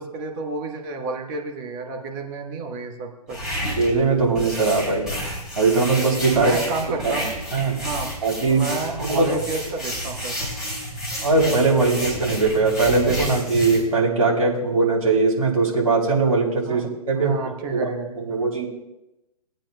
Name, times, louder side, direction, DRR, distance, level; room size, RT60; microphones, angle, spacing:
voice 1, 0.0-3.4 6.3-7.3 7.7-8.1 8.5-10.4 16.7-16.8 17.1-18.5, right 4 dB, 30° right, 2 dB, 1.4 m, -31 dB
sound 1, 3.3-13.8, equal, 5° right, 3.9 m, -31 dB
voice 2, 3.8-5.2 5.5-6.5 7.0-7.1 7.5-7.8 8.2-8.7 9.0-9.3 11.2-17.3 17.7-17.9 18.3-18.7, right 3 dB, 65° right, -3 dB, 3.4 m, -20 dB
19.0 x 8.9 x 2.3 m, 0.94 s
figure-of-eight pair, 130°, 20 cm